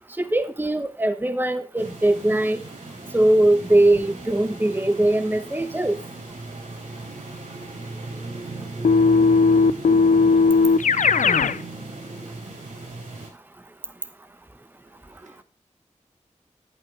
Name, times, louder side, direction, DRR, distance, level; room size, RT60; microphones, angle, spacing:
voice 1, 0.2-2.6 3.1-6.0, right 1 dB, 15° right, 1.0 m, -21 dB
sound 1, 1.8-13.3, right 2 dB, 90° right, 4.2 m, -36 dB
Keyboard (musical), 8.8-11.6, left 4 dB, 75° left, 0.5 m, -17 dB
voice 2, 14.8-15.4, right 3 dB, 65° right, 1.8 m, -58 dB
11.5 x 8.8 x 3.3 m
wide cardioid pair, 70°, 13 cm